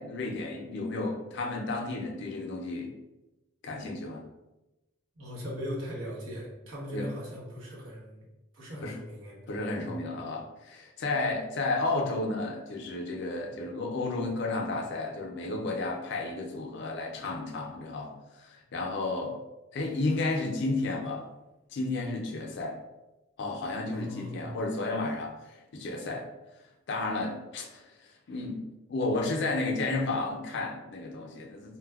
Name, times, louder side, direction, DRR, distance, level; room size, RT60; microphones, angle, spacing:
voice 1, 0.0-2.9 3.6-4.3 6.9-7.1 8.8-9.0 9.5-19.4 19.7-21.3 21.7-22.8 23.4-26.3 26.9-31.8, left 2 dB, 55° left, 2 dB, 0.4 m, -32 dB
voice 2, 5.2-8.3 8.5-9.5 9.8-10.1 23.8-24.6, equal, 80° right, -4 dB, 0.9 m, -39 dB
4.0 x 2.2 x 2.3 m, 1.0 s
head